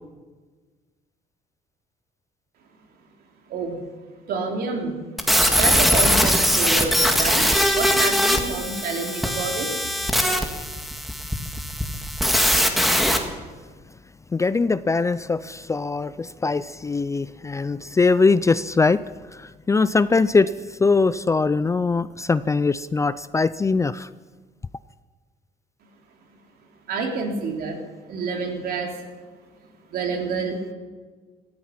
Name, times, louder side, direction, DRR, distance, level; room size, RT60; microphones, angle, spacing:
voice 1, 4.3-4.9 5.5-9.9 26.9-27.8 28.1-28.9 29.9-30.6, right 4 dB, 65° right, 2 dB, 3.4 m, -28 dB
sound 1, 5.2-13.2, equal, ahead, 1.8 m, -21 dB
voice 2, 14.3-19.0 19.3-20.5 20.8-24.1, left 4 dB, 20° left, 16 dB, 0.4 m, -21 dB
18.0 x 13.0 x 5.9 m, 1.4 s
cardioid pair, 110°, 17 cm